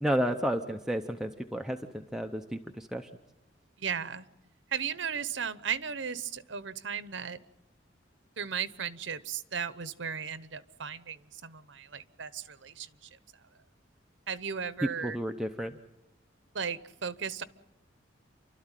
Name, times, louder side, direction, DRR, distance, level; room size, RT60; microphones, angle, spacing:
voice 1, 0.0-3.1 15.0-15.7, equal, 5° right, 4 dB, 0.7 m, -32 dB
voice 2, 3.8-4.2 4.7-7.4 8.4-13.1 14.3-15.2 16.5-17.4, right 7 dB, 75° right, 15 dB, 0.9 m, -36 dB
29.0 x 12.5 x 9.1 m, 1.0 s
head